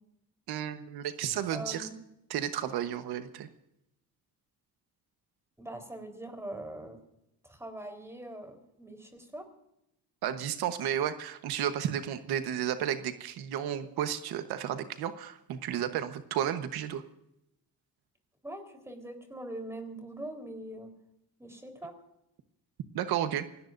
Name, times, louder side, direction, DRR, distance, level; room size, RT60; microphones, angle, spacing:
voice 1, 0.5-1.9 2.3-3.5 10.2-17.0 22.9-23.4, right 10 dB, 90° right, 9 dB, 1.2 m, -32 dB
voice 2, 1.5-1.9 5.6-7.0 7.4-9.5 18.4-20.9 21.4-21.9, right 1 dB, 5° right, 4 dB, 4.0 m, -42 dB
27.5 x 18.0 x 2.6 m, 0.83 s
cardioid pair, 120°, 37 cm